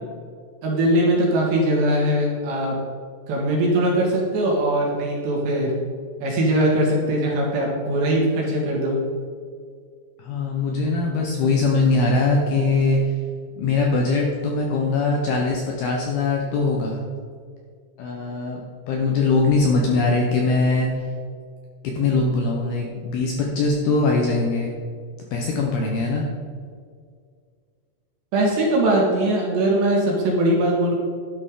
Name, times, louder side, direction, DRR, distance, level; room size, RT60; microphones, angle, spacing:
voice 1, 0.6-2.8 3.3-5.7 6.2-9.0 28.3-30.9, right 1 dB, 65° right, -2 dB, 3.8 m, -21 dB
voice 2, 10.2-13.1 13.6-17.0 18.0-18.6 18.9-20.9 21.8-24.7 25.3-26.3, left 3 dB, 75° left, 0 dB, 2.4 m, -21 dB
12.0 x 11.0 x 3.8 m, 2.1 s
omnidirectional pair, 5.8 m